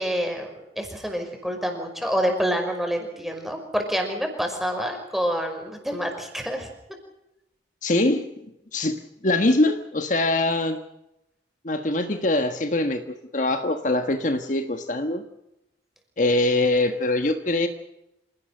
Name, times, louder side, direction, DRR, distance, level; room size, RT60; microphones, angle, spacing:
voice 1, 0.0-6.7, equal, ahead, 3 dB, 5.6 m, -27 dB
voice 2, 7.8-8.3 8.7-10.8 11.6-15.2 16.2-17.7, left 2 dB, 45° left, 7 dB, 1.5 m, -23 dB
27.5 x 18.0 x 6.7 m, 0.88 s
head